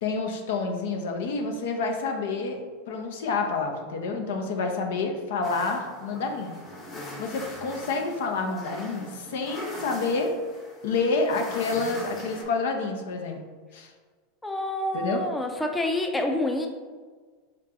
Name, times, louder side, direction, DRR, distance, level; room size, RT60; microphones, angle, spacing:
voice 1, 0.0-2.6 2.9-6.5 7.2-10.3 10.8-13.4 13.7-13.9 14.9-15.2, left 4 dB, 75° left, 4 dB, 0.6 m, -28 dB
sound 1, 5.4-12.4, left 1 dB, 30° left, 1.1 m, -41 dB
voice 2, 14.4-16.7, left 1 dB, 10° left, 3 dB, 0.5 m, -27 dB
3.7 x 3.7 x 2.8 m, 1.5 s
hypercardioid pair, 110°, 0 cm